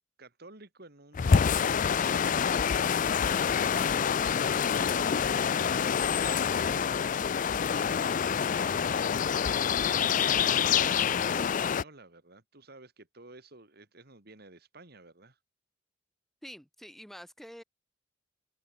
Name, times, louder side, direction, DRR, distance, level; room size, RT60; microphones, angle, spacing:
voice 1, 0.2-9.0 9.8-15.4, right 2 dB, 55° right, 3.3 m, -53 dB
sound 1, 1.1-11.8, left 7 dB, 45° left, 0.4 m, -26 dB
voice 2, 16.4-17.6, equal, ahead, 2.0 m, -47 dB
open air
head